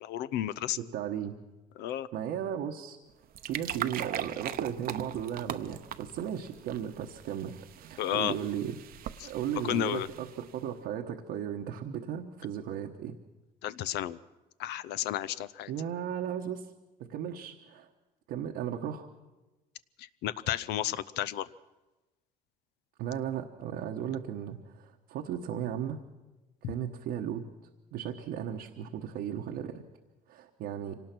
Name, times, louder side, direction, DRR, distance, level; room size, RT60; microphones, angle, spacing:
voice 1, 0.0-0.8 1.8-2.1 8.0-8.3 9.2-9.3 9.6-10.1 13.6-14.2 14.6-15.7 20.0-21.5, left 12 dB, 85° left, 15 dB, 0.7 m, -32 dB
voice 2, 0.8-1.4 2.1-3.0 3.5-8.8 9.2-13.2 15.7-16.7 17.1-17.9 18.3-19.1 23.0-26.0 26.7-27.4 27.9-29.8 30.3-31.0, right 9 dB, 85° right, 2 dB, 1.2 m, -36 dB
sound 1, 3.1-10.6, right 11 dB, 60° right, 0.8 m, -40 dB
25.0 x 18.5 x 6.0 m, 1.1 s
cardioid pair, 110°, 17 cm